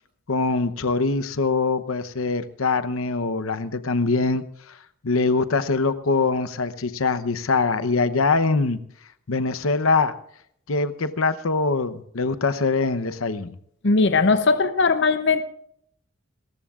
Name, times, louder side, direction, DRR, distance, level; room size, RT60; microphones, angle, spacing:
voice 1, 0.3-4.8 5.0-8.8 9.3-10.1 10.7-13.6, left 3 dB, 90° left, 12 dB, 0.9 m, -23 dB
voice 2, 13.8-15.4, left 4 dB, 55° left, 10 dB, 0.7 m, -19 dB
29.5 x 14.5 x 2.5 m, 0.69 s
head